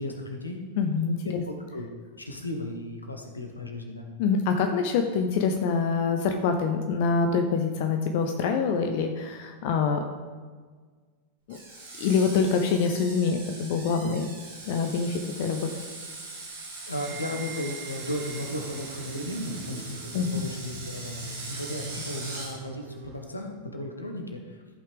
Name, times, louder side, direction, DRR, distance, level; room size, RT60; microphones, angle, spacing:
voice 1, 0.0-0.6 1.7-1.9 2.2-4.1 16.9-24.8, left 1 dB, 80° left, 3 dB, 1.2 m, -35 dB
voice 2, 0.8-1.4 4.2-10.1 11.5-11.6 12.0-14.3 14.6-15.7 20.1-20.4, left 5 dB, 50° left, 5 dB, 0.6 m, -25 dB
Screech, 11.5-22.5, right 3 dB, 65° right, 2.1 m, -41 dB
sound 1, 16.8-23.4, right 3 dB, 35° right, 0.7 m, -42 dB
14.0 x 5.6 x 3.4 m, 1.5 s
figure-of-eight pair, 90°, 0 cm